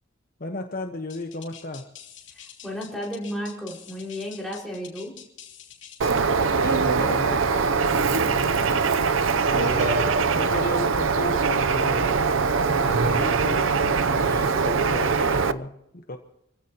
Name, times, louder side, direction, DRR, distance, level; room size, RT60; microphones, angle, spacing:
voice 1, 0.4-1.9 6.5-8.9 9.5-12.3 12.7-16.2, left 2 dB, 45° left, 5 dB, 1.2 m, -34 dB
sound 1, 1.1-6.2, left 9 dB, 65° left, 3.1 m, -46 dB
voice 2, 2.6-5.1, equal, ahead, -4 dB, 5.4 m, -33 dB
Bird, 6.0-15.5, right 5 dB, 75° right, 0.7 m, -22 dB
Piano, 9.8-11.7, equal, 35° right, 0.9 m, -34 dB
29.0 x 15.5 x 3.0 m, 0.84 s
head